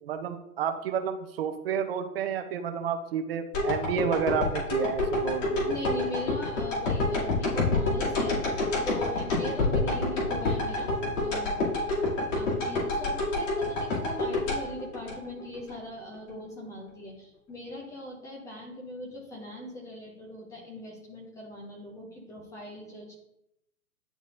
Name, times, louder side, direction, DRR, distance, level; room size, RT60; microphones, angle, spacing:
voice 1, 0.0-5.7, right 7 dB, 40° right, 8 dB, 0.6 m, -30 dB
sound 1, 3.5-15.7 16.1-16.2, left 2 dB, 55° left, 2.5 m, -28 dB
voice 2, 5.7-10.9 11.2-12.0 12.3-23.2, left 1 dB, 5° left, -2 dB, 0.5 m, -40 dB
10.5 x 4.0 x 2.5 m, 0.82 s
figure-of-eight pair, 115°, 45 cm